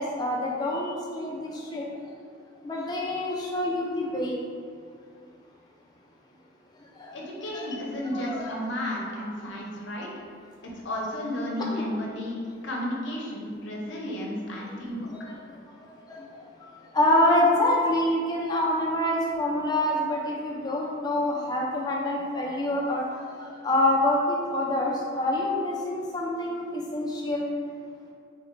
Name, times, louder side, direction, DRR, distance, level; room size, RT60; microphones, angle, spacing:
voice 1, 0.0-1.9 2.6-4.4 7.0-7.1 7.5-7.6 8.1-8.5 14.8-14.9 16.1-16.2 16.9-27.5, left 1 dB, 20° left, -2 dB, 0.3 m, -26 dB
voice 2, 7.1-10.1 10.6-12.4 12.6-15.1, left 1 dB, 70° left, -2 dB, 0.6 m, -33 dB
3.1 x 2.1 x 3.1 m, 2.1 s
head